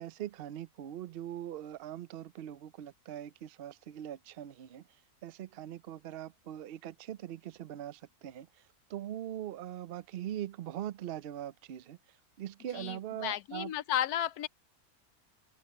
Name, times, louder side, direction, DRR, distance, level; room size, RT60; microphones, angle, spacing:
voice 1, 0.0-4.8 5.2-8.5 8.9-12.0 12.4-13.7, right 11 dB, 60° right, 0.6 m, -41 dB
voice 2, 12.7-14.5, left 11 dB, 80° left, 1.2 m, -33 dB
omnidirectional pair, 1.6 m